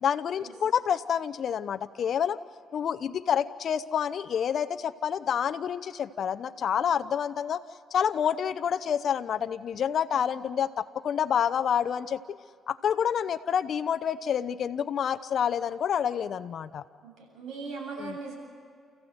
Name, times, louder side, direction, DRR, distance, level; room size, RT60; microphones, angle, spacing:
voice 1, 0.0-2.4 2.7-7.6 7.9-12.4 12.7-16.8 18.0-18.1, left 8 dB, 60° left, 11 dB, 0.7 m, -28 dB
voice 2, 17.0-18.4, right 4 dB, 75° right, 1 dB, 7.9 m, -39 dB
29.5 x 15.0 x 7.9 m, 2.3 s
cardioid pair, 90°, 0 cm